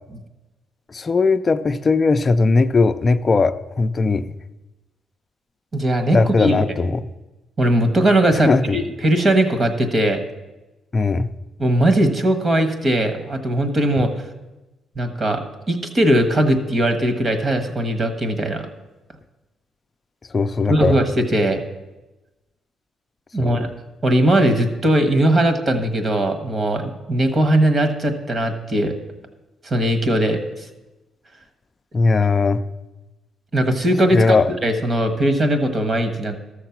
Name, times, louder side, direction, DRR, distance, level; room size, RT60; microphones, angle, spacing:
voice 1, 0.9-4.3 6.1-7.0 8.4-8.8 10.9-11.3 20.3-21.0 23.4-23.6 31.9-32.6 34.1-34.5, left 3 dB, 35° left, 10 dB, 0.5 m, -18 dB
voice 2, 5.7-6.6 7.6-10.2 11.6-14.2 14.9-18.7 20.7-21.6 23.3-23.7 24.0-28.9 29.6-30.7 33.5-36.4, right 1 dB, 35° right, 8 dB, 1.4 m, -19 dB
13.5 x 6.6 x 6.0 m, 1.1 s
cardioid pair, 90°, 0 cm